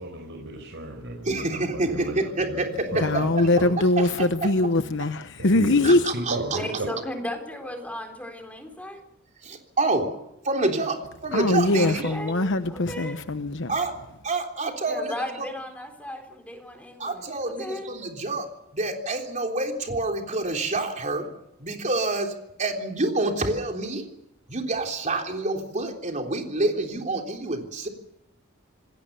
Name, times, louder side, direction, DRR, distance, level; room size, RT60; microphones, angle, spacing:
voice 1, 0.0-3.7 5.4-6.9, right 1 dB, 60° right, 5.2 m, -34 dB
voice 2, 1.3-3.3 5.8-6.6 9.4-10.2 10.4-12.1 13.7-13.9 14.2-15.1 17.0-18.5 18.7-21.3 21.6-24.1 24.5-27.9, right 2 dB, 35° right, 3.6 m, -27 dB
voice 3, 2.9-6.0 11.3-13.7, left 2 dB, 60° left, 1.1 m, -22 dB
voice 4, 6.5-9.0 11.8-13.2 14.9-17.9, left 1 dB, 5° left, 4.3 m, -36 dB
27.5 x 19.5 x 6.9 m
head